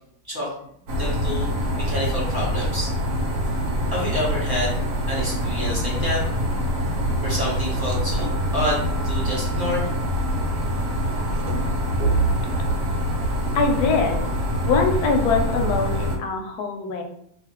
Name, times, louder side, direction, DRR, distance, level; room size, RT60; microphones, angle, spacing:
voice 1, 0.3-0.7 1.0-2.9 3.9-4.7 5.1-6.2 7.2-9.9, left 1 dB, 25° right, -7 dB, 0.4 m, -28 dB
sound 1, 0.9-16.2, equal, 80° right, 1.2 m, -24 dB
voice 2, 13.5-14.2 14.6-17.0, left 4 dB, 75° left, 3 dB, 1.0 m, -23 dB
2.5 x 2.5 x 2.9 m, 0.69 s
omnidirectional pair, 1.8 m